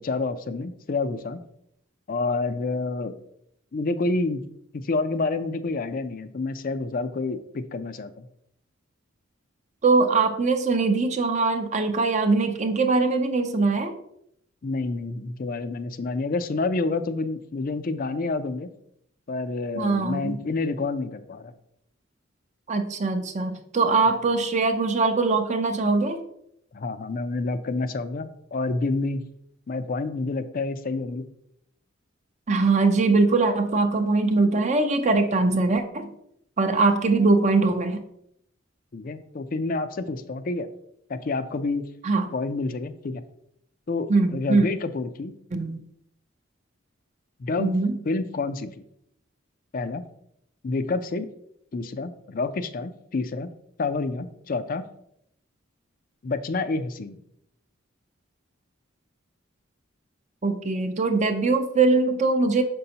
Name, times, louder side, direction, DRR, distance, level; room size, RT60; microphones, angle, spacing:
voice 1, 0.0-1.4 2.1-3.2 3.7-4.4 4.7-8.3 14.6-18.7 19.3-21.5 26.7-29.2 29.7-31.3 38.9-40.7 41.1-41.9 42.3-43.2 43.9-45.3 47.4-47.7 48.1-48.7 49.7-50.0 50.6-51.3 51.7-53.5 53.8-54.8 56.2-57.2, left 3 dB, 45° left, 11 dB, 0.5 m, -28 dB
voice 2, 9.8-14.0 19.7-20.4 22.7-26.2 32.5-36.1 36.6-38.0 42.0-42.3 44.1-44.7 45.5-45.8 47.6-48.0 60.4-62.6, right 3 dB, 35° right, 6 dB, 0.5 m, -22 dB
6.3 x 5.3 x 2.8 m, 0.74 s
head